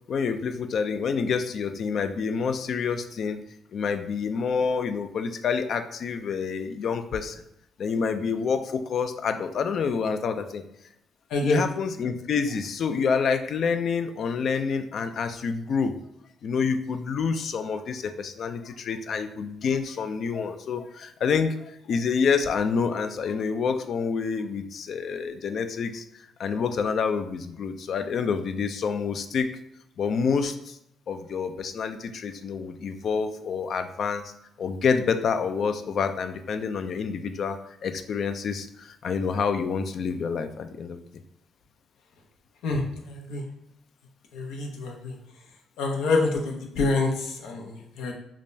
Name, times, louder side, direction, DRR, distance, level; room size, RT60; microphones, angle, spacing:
voice 1, 0.1-3.4 3.7-7.4 7.8-10.6 11.4-15.9 16.4-26.0 26.4-29.5 30.0-30.8 31.1-34.3 34.6-41.0, left 5 dB, 60° left, 9 dB, 0.4 m, -27 dB
voice 2, 11.3-11.6 42.6-43.4 44.3-45.1 45.8-48.1, left 3 dB, 85° left, 1 dB, 0.8 m, -27 dB
5.0 x 2.2 x 2.6 m, 0.78 s
cardioid pair, 90°, 0 cm